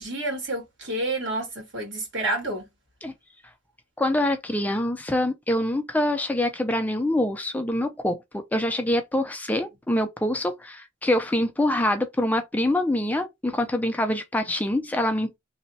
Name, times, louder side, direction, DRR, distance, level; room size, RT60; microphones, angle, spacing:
voice 1, 0.0-2.7, right 2 dB, 70° right, 1.7 m, -29 dB
voice 2, 4.0-15.4, left 1 dB, 10° left, 0.4 m, -25 dB
3.1 x 2.1 x 4.0 m
head